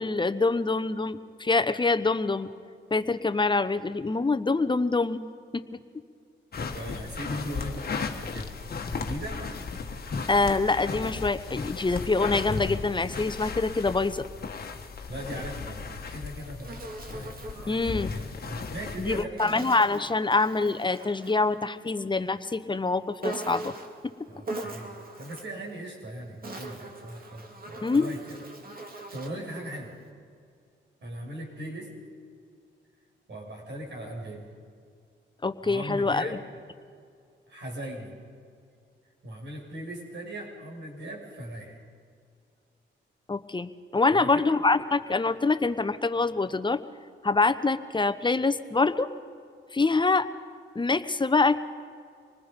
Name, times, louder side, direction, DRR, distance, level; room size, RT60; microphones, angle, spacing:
voice 1, 0.0-2.5 2.9-5.2 5.5-5.8 10.3-14.2 17.7-18.1 19.0-23.7 24.0-24.1 27.8-28.1 35.4-36.3 43.3-46.8 47.2-49.1 49.7-50.3 50.7-51.6, left 3 dB, 25° left, 10 dB, 1.0 m, -25 dB
sound 1, 6.5-19.2, left 4 dB, 50° left, 1.5 m, -35 dB
voice 2, 6.6-8.5 8.9-9.5 15.1-17.4 17.6-17.8 18.1-19.7 24.3-28.4 29.1-30.0 31.0-31.9 33.3-34.5 35.6-36.5 37.5-38.2 39.2-41.8 44.1-44.5, right 1 dB, 65° right, -1 dB, 6.3 m, -39 dB
Insect, 16.1-18.3 19.4-21.5 23.2-24.0 24.4-25.6 26.2-29.5, right 2 dB, 45° right, 2.5 m, -40 dB
26.0 x 20.0 x 5.3 m, 2.3 s
cardioid pair, 75°, 20 cm